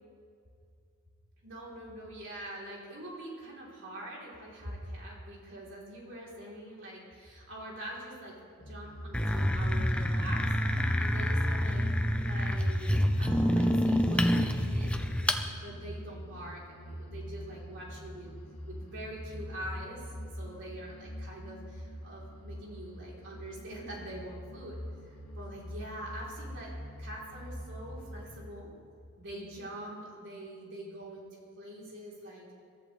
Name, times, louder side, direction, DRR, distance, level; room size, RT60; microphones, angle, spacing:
voice 1, 1.4-11.9 12.2-18.3 18.7-24.8 25.0-26.7 27.0-28.7 29.2-31.3 31.6-32.5, right 1 dB, 60° right, -4 dB, 4.0 m, -44 dB
sound 1, 8.6-28.5, equal, 85° left, 2.0 m, -43 dB
sound 2, 9.1-15.4, equal, 5° left, 0.7 m, -27 dB
22.5 x 14.0 x 3.5 m, 2.3 s
head